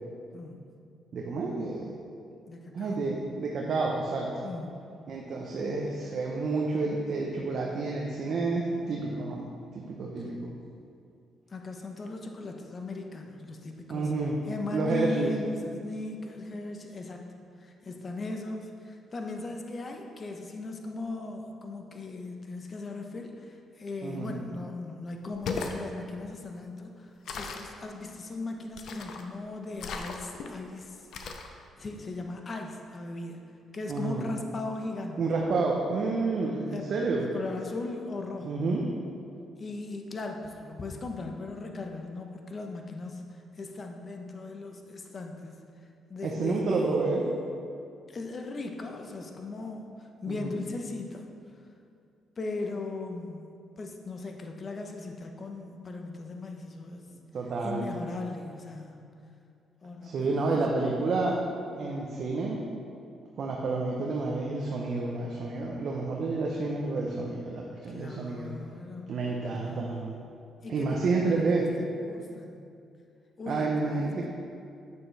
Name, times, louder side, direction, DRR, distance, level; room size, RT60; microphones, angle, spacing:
voice 1, 0.3-0.7 2.5-3.0 4.4-4.8 11.5-14.1 14.5-17.3 17.6-31.4 31.8-33.4 33.7-35.2 36.7-36.9 37.2-38.6 39.6-45.6 46.1-47.1 48.1-51.2 52.4-53.5 53.8-57.1 57.6-59.1 59.8-61.2 67.9-69.2 69.6-69.9 70.6-72.6 73.4-74.1, left 3 dB, 40° left, 3 dB, 0.9 m, -38 dB
voice 2, 1.1-1.9 2.7-4.3 5.1-10.5 13.9-14.4 14.7-15.3 24.0-24.3 33.9-34.2 35.2-37.3 38.4-38.9 46.2-47.2 50.3-50.6 57.3-57.9 60.0-61.4 61.7-62.6 63.4-68.5 69.1-70.2 70.7-71.7 73.5-74.3, right 3 dB, 60° right, -1 dB, 0.8 m, -29 dB
sound 1, 25.3-25.8 27.3-27.7 28.8-29.3 29.8-30.5 31.1-31.5, left 5 dB, 70° left, 0.6 m, -36 dB
8.3 x 6.7 x 3.4 m, 2.4 s
cardioid pair, 90°, 0 cm